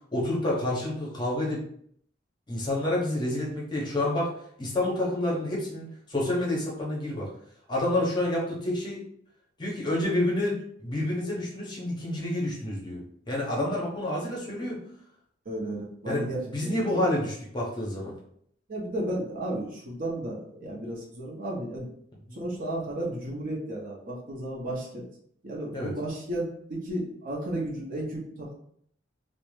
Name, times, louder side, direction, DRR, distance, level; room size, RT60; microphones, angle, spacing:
voice 1, 0.1-1.6 2.5-4.3 4.6-7.3 7.7-9.0 9.6-14.8 16.1-18.1 22.3-22.4 25.7-25.9, left 1 dB, 25° left, -4 dB, 0.7 m, -29 dB
voice 2, 15.5-16.8 18.7-21.9 22.3-25.1 25.4-28.6, right 1 dB, 45° right, -3 dB, 0.7 m, -33 dB
2.4 x 2.1 x 3.1 m, 0.67 s
head